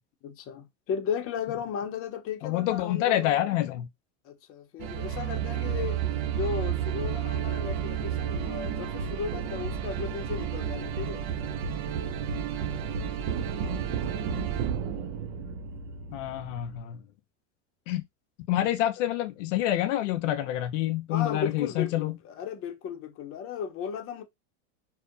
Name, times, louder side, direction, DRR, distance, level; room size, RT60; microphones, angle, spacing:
voice 1, 0.2-3.4 4.2-6.0 6.3-11.3 21.1-24.2, left 7 dB, 40° left, 0.7 m, -35 dB
voice 2, 2.4-3.9 16.1-17.0 17.9-18.0 18.5-22.2, left 13 dB, 85° left, 0.5 m, -27 dB
sound 1, 4.8-16.8, right 8 dB, 60° right, 0.6 m, -31 dB
2.7 x 2.1 x 2.5 m
supercardioid pair, 110°, 36 cm